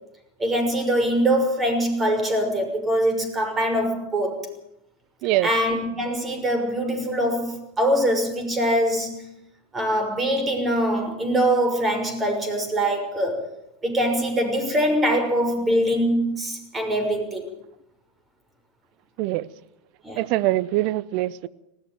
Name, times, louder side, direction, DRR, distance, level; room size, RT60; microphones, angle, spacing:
voice 1, 0.4-4.5 5.4-9.3 9.7-13.5 13.8-17.5 20.0-20.3, equal, 20° right, 7 dB, 6.2 m, -23 dB
voice 2, 20.2-21.5, right 16 dB, 55° right, 19 dB, 0.8 m, -23 dB
19.5 x 15.0 x 9.3 m, 0.83 s
hypercardioid pair, 100°, 0 cm